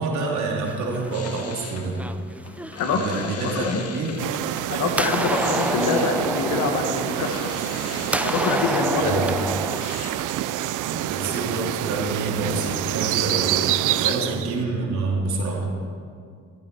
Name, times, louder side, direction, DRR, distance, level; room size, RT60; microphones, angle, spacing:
voice 1, 0.0-2.0 2.9-4.2 9.0-9.2 10.8-13.5 13.8-15.7, right 3 dB, 70° right, -2 dB, 3.4 m, -27 dB
sound 1, 0.7-1.5 2.0-3.5 4.2-4.6 4.9-7.8 8.1-9.8, right 1 dB, 5° right, 0.6 m, -29 dB
sound 2, 1.0-10.1, left 5 dB, 55° left, 1.6 m, -40 dB
voice 2, 2.8-3.3 3.6-3.8 4.7-7.5 8.2-9.2 13.3-13.4 13.9-14.3, left 4 dB, 75° left, 4 dB, 1.8 m, -25 dB
sound 3, 4.2-14.6, right 13 dB, 90° right, 0.6 m, -27 dB
15.0 x 13.5 x 4.7 m, 2.3 s
cardioid pair, 90°, 30 cm